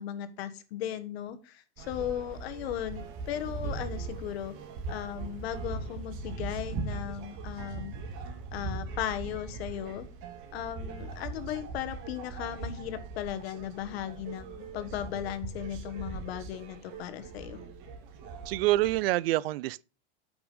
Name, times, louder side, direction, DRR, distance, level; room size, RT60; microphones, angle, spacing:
voice 1, 0.0-3.0 3.3-4.5 4.9-8.0 8.5-10.1 10.5-17.6, left 11 dB, 65° left, 1.5 m, -37 dB
sound 1, 1.8-19.1, right 4 dB, 40° right, 2.3 m, -40 dB
voice 2, 18.5-19.8, right 17 dB, 60° right, 0.4 m, -26 dB
8.8 x 6.0 x 5.3 m
supercardioid pair, 165°, 33 cm